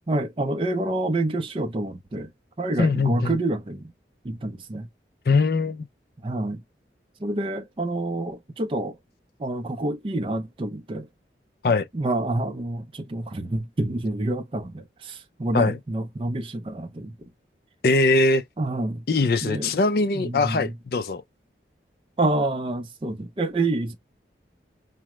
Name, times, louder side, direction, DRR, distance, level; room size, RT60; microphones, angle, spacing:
voice 1, 0.1-2.3 2.6-3.9 4.2-4.9 6.2-6.6 7.2-9.0 9.4-11.1 11.9-17.1 18.6-19.0 19.4-19.7 20.1-20.7 22.2-24.0, right 2 dB, 30° right, 0.4 m, -28 dB
voice 2, 2.8-3.3 5.3-5.9 11.6-11.9 15.5-15.8 17.8-18.4 19.1-21.2, left 3 dB, 55° left, 0.4 m, -21 dB
4.7 x 2.1 x 3.0 m
head